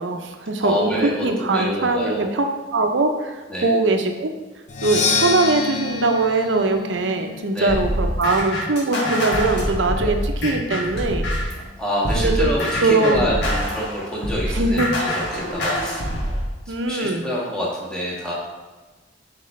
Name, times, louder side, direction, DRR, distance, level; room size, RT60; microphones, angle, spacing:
voice 1, 0.0-2.5 2.7-3.4 3.6-4.3 4.8-11.2 12.2-12.5 12.8-13.3 14.5-14.9 16.7-17.2, right 3 dB, 75° right, 5 dB, 0.7 m, -21 dB
voice 2, 0.6-2.3 3.5-3.7 7.5-7.8 10.0-10.1 11.8-16.3 16.6-18.4, equal, 5° left, -6 dB, 1.6 m, -27 dB
Percussion, 4.7-8.5, left 5 dB, 40° left, 0.6 m, -27 dB
sound 1, 7.7-11.6 12.0-16.4, equal, 65° left, 1.7 m, -25 dB
7.7 x 4.4 x 3.2 m, 1.2 s
head